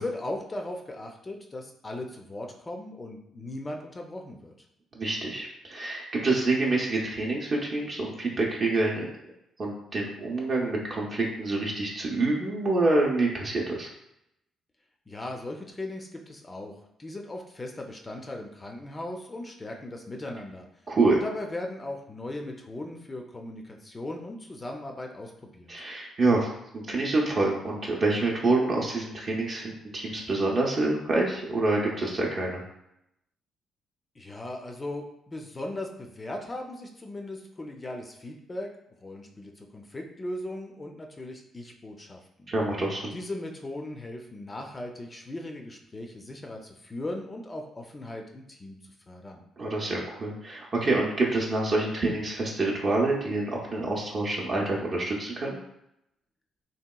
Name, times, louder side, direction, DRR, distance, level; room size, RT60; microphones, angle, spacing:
voice 1, 0.0-4.5 15.1-16.7 17.0-20.7 21.2-25.9 34.2-38.7 39.0-42.5 43.1-48.8 49.1-49.4, left 1 dB, 25° left, 2 dB, 0.3 m, -38 dB
voice 2, 4.9-9.0 9.6-13.9 20.9-21.2 25.7-32.6 42.5-43.1 49.6-55.6, right 2 dB, 45° right, -3 dB, 0.5 m, -27 dB
2.9 x 2.8 x 2.2 m, 0.80 s
cardioid pair, 90°, 0 cm